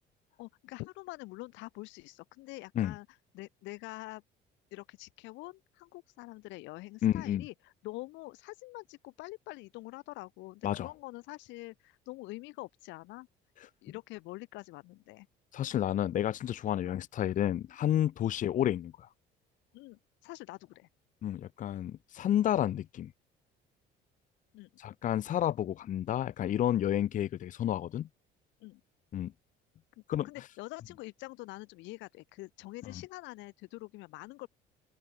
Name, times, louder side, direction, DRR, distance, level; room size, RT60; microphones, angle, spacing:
voice 1, 0.4-3.1 3.3-4.2 4.7-13.3 13.8-15.3 16.8-17.1 18.2-18.4 19.7-20.9 24.5-24.7 28.6-28.8 30.2-34.5, left 21 dB, 85° left, 5.3 m, -45 dB
voice 2, 7.0-7.4 10.6-10.9 15.5-18.9 21.2-23.1 24.8-28.1 29.1-29.3 30.1-30.3, left 11 dB, 45° left, 1.1 m, -30 dB
open air
cardioid pair, 145°, 18 cm